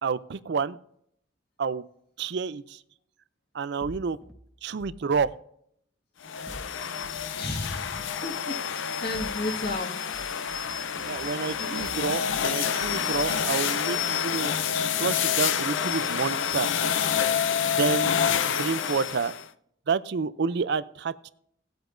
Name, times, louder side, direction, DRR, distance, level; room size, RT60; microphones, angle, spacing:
voice 1, 0.0-0.8 1.6-1.8 2.2-2.8 3.5-4.2 4.6-5.3 10.9-14.6 15.0-16.7 17.6-18.1 18.5-19.3 19.9-21.3, right 5 dB, 60° right, 0.4 m, -29 dB
sound 1, 3.8-5.3 6.5-7.8 9.0-9.8 10.1-12.5 12.8-13.5, equal, ahead, 0.6 m, -47 dB
sound 2, 6.2-19.5, left 8 dB, 90° left, 0.6 m, -28 dB
voice 2, 7.3-9.9 10.9-11.2 11.5-11.8, left 2 dB, 55° left, 1.6 m, -34 dB
19.0 x 7.8 x 2.6 m
head